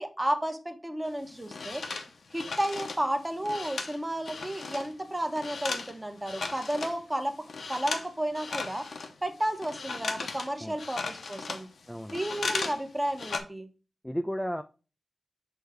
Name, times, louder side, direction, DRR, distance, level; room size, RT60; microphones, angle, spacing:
voice 1, 0.0-1.8 2.3-7.3 7.7-8.8 9.2-11.7 12.1-13.7, right 1 dB, 15° right, 6 dB, 1.0 m, -32 dB
sound 1, 1.1-4.9 5.2-7.0 7.4-8.1 8.3-12.8 13.1-13.4, left 4 dB, 80° left, 0.9 m, -36 dB
voice 2, 11.9-12.2 14.0-14.6, equal, 5° left, 8 dB, 0.4 m, -33 dB
6.3 x 3.4 x 4.9 m, 0.33 s
wide cardioid pair, 100°, 0 cm